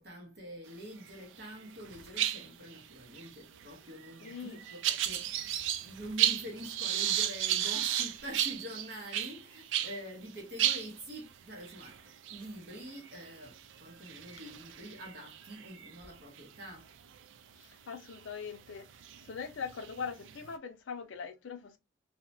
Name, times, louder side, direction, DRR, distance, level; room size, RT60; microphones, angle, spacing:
voice 1, 0.0-16.9, equal, 55° right, 0.8 m, -46 dB
sound 1, 1.1-1.5 1.8-10.0 10.3-10.4 10.6-16.4 17.0-17.2 18.1-18.2 18.8-20.5, right 11 dB, 75° right, 0.3 m, -34 dB
voice 2, 4.2-4.6 17.6-18.9 19.2-21.8, left 6 dB, 80° left, 0.5 m, -41 dB
2.7 x 2.1 x 2.6 m
head